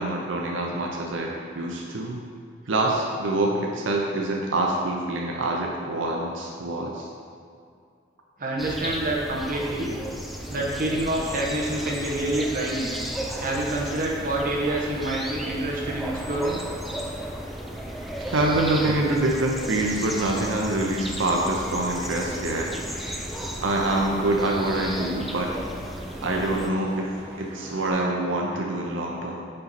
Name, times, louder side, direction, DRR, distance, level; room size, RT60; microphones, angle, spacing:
voice 1, 0.0-2.2 2.7-7.1 18.3-22.7 23.6-25.5 26.2-27.1 27.4-29.4, right 2 dB, 85° right, -1 dB, 0.6 m, -25 dB
voice 2, 8.4-10.0 10.5-12.9 13.4-16.6, right 1 dB, 45° right, -3 dB, 1.0 m, -27 dB
sound 1, 8.6-26.7, equal, ahead, 0.3 m, -35 dB
sound 2, 10.4-27.9, equal, 25° right, 1.3 m, -43 dB
5.4 x 5.2 x 4.2 m, 2.3 s
head